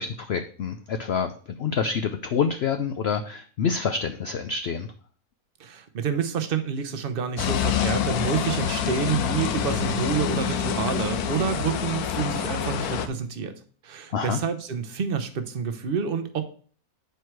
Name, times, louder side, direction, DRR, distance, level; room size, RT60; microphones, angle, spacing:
voice 1, 0.0-4.9 14.1-14.4, left 6 dB, 65° left, 8 dB, 0.6 m, -27 dB
voice 2, 5.6-13.5 13.8-16.4, right 6 dB, 45° right, 9 dB, 0.9 m, -28 dB
sound 1, 7.4-13.1, left 9 dB, 85° left, 1.2 m, -27 dB
8.1 x 4.6 x 4.6 m, 0.43 s
omnidirectional pair, 1.6 m